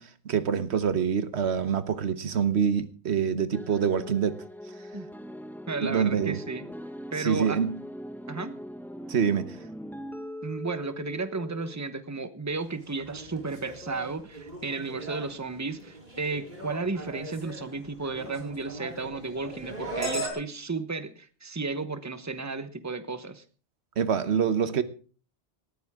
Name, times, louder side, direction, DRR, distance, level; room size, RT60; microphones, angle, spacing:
voice 1, 0.0-4.4 5.8-6.4 7.2-7.7 9.1-9.5 24.0-24.8, right 7 dB, 90° right, 1.3 m, -26 dB
sound 1, 3.5-12.0, equal, ahead, 0.7 m, -41 dB
voice 2, 5.7-6.7 7.1-7.6 8.3-8.5 10.4-23.4, right 3 dB, 15° right, 1.0 m, -33 dB
sound 2, 12.7-20.3, right 1 dB, 45° right, 5.1 m, -39 dB
19.0 x 14.0 x 3.6 m
omnidirectional pair, 1.1 m